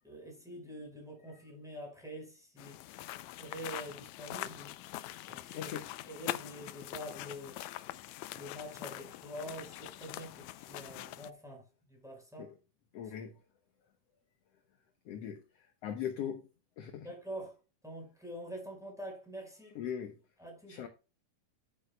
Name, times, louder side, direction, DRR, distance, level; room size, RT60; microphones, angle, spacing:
voice 1, 0.0-2.8 3.3-4.7 5.3-5.7 6.1-7.6 8.3-12.5 17.0-17.5 17.8-19.7 20.4-20.8, equal, ahead, 4.6 m, -46 dB
sound 1, 2.6-11.3, left 15 dB, 85° left, 1.6 m, -43 dB
voice 2, 5.5-5.9 12.4-12.6 12.9-13.4 15.1-16.4 16.8-17.1 19.8-20.2 20.7-20.9, left 9 dB, 65° left, 1.8 m, -40 dB
11.0 x 9.8 x 2.3 m
omnidirectional pair, 3.8 m